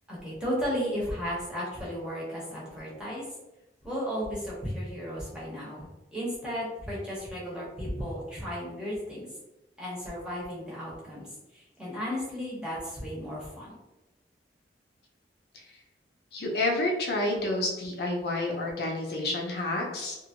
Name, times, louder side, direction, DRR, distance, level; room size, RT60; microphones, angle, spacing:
voice 1, 0.1-3.2 3.8-9.3 9.8-13.8, equal, 5° right, -7 dB, 1.0 m, -34 dB
voice 2, 16.3-20.2, left 2 dB, 65° left, -1 dB, 0.6 m, -29 dB
2.8 x 2.6 x 2.7 m, 0.99 s
head